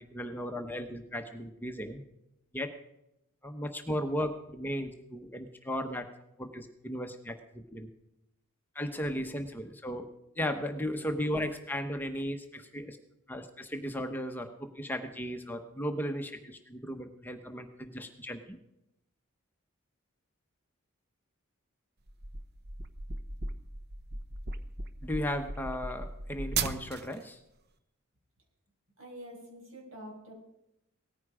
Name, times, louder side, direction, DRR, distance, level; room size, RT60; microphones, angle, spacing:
voice 1, 0.0-2.0 2.5-2.7 3.4-6.1 6.4-7.9 8.7-10.1 10.3-13.0 13.3-18.6 25.0-27.4, equal, 10° left, 5 dB, 0.9 m, -36 dB
sound 1, 22.1-27.2, right 4 dB, 50° right, 0.9 m, -37 dB
voice 2, 29.0-30.3, equal, 70° right, 1 dB, 5.9 m, -46 dB
18.0 x 14.5 x 4.9 m, 0.86 s
head